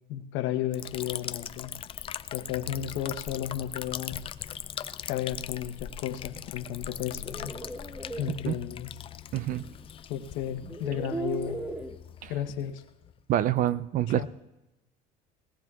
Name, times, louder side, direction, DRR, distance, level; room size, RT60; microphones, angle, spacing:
voice 1, 0.1-1.8 2.3-4.3 5.1-7.6 8.2-9.0 10.1-11.6 12.3-12.8 14.1-14.3, left 10 dB, 70° left, 7 dB, 1.0 m, -33 dB
Liquid, 0.7-13.2, left 9 dB, 25° left, 0.4 m, -40 dB
sound 1, 7.1-8.3 9.8-9.9 10.6-11.9, right 2 dB, 5° right, 0.8 m, -37 dB
voice 2, 9.3-9.7 12.2-12.3 13.3-14.3, right 12 dB, 40° right, 17 dB, 0.4 m, -26 dB
20.5 x 17.5 x 2.4 m, 0.97 s
cardioid pair, 130°, 20 cm